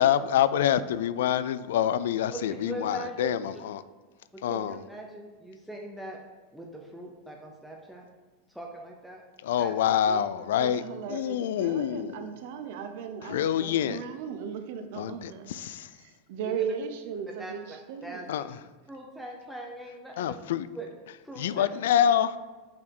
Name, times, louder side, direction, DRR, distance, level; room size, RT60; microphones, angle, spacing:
voice 1, 0.0-3.8 4.4-4.8 9.4-12.4 13.2-14.0 14.9-15.9 18.3-18.6 20.2-20.7 21.4-22.3, left 10 dB, 85° left, 14 dB, 0.3 m, -26 dB
voice 2, 2.3-3.3 4.3-6.2 6.5-8.1 8.5-9.2 9.6-9.7 10.0-10.2 16.4-16.7 17.4-18.3 18.9-20.4 20.7-20.9 21.2-21.7 21.9-22.1, right 1 dB, ahead, -2 dB, 0.7 m, -41 dB
voice 3, 10.5-15.5 15.9-18.3, right 7 dB, 65° right, 7 dB, 0.5 m, -37 dB
5.9 x 4.3 x 4.5 m, 1.3 s
supercardioid pair, 130°, 0 cm